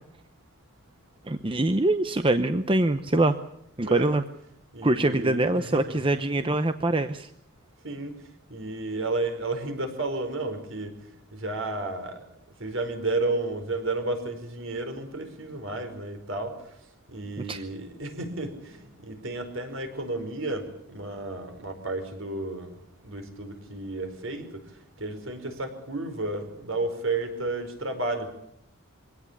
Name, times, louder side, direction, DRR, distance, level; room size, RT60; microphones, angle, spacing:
voice 1, 1.3-3.4 3.8-4.2 4.8-7.3 17.5-17.6, right 2 dB, 25° right, 9 dB, 0.8 m, -24 dB
voice 2, 3.8-4.2 4.7-6.0 7.8-8.1 8.5-10.9 11.4-12.2 12.6-16.5 17.1-18.7 19.0-22.7 23.0-24.4 25.0-28.3, right 2 dB, 60° right, 7 dB, 4.9 m, -32 dB
24.5 x 17.5 x 8.6 m, 0.75 s
head